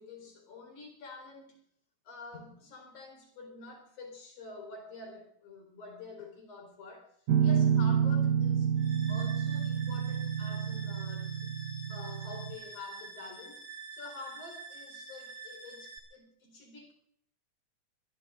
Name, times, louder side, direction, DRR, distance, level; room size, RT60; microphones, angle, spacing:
voice 1, 0.0-1.6 2.0-7.1 7.4-8.7 9.1-11.5 11.9-13.6 13.9-16.9, left 3 dB, 85° left, 3 dB, 5.9 m, -48 dB
Guitar, 7.3-12.5, right 8 dB, 75° right, 2.4 m, -29 dB
sound 1, 8.8-16.0, right 4 dB, 50° right, 4.7 m, -47 dB
24.5 x 22.5 x 2.6 m, 0.69 s
omnidirectional pair, 3.4 m